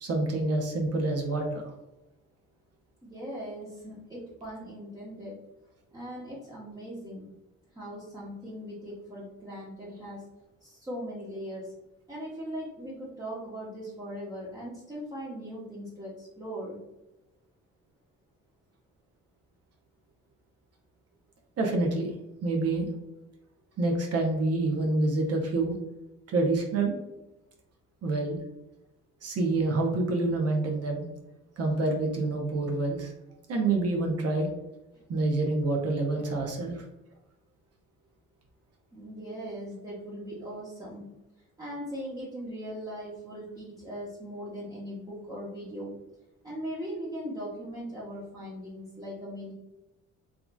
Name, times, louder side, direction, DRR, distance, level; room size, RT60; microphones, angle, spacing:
voice 1, 0.0-1.7 21.6-22.1 22.4-22.9 23.8-25.8 26.3-26.9 28.0-28.4 29.2-31.0 31.6-33.1 33.5-34.5 35.1-36.8, right 2 dB, 55° right, 1 dB, 0.7 m, -27 dB
voice 2, 3.0-5.3 5.9-7.3 7.7-10.2 10.6-11.7 12.1-16.8 34.9-35.0 38.9-41.0 41.6-45.9 46.4-49.5, equal, 10° right, -7 dB, 0.8 m, -39 dB
3.6 x 2.4 x 2.2 m, 0.94 s
cardioid pair, 90°, 30 cm